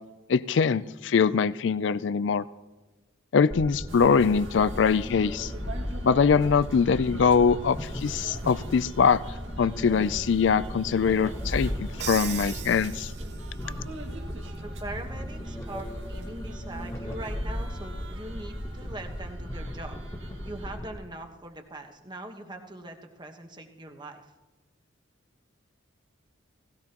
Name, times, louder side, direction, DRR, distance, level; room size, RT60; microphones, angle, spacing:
voice 1, 0.3-2.4 3.3-5.5 6.0-9.2 9.6-11.7 12.0-13.1, left 6 dB, 65° left, 17 dB, 0.4 m, -23 dB
sound 1, 3.5-21.0, equal, 15° left, 1.3 m, -37 dB
sound 2, 3.9-20.8, right 1 dB, 80° right, 2.0 m, -42 dB
Crash cymbal, 12.0-13.7, right 13 dB, 55° right, 0.5 m, -38 dB
voice 2, 14.6-20.0 20.4-24.3, right 2 dB, 20° right, 4 dB, 1.2 m, -41 dB
18.0 x 17.0 x 3.0 m, 1.1 s
head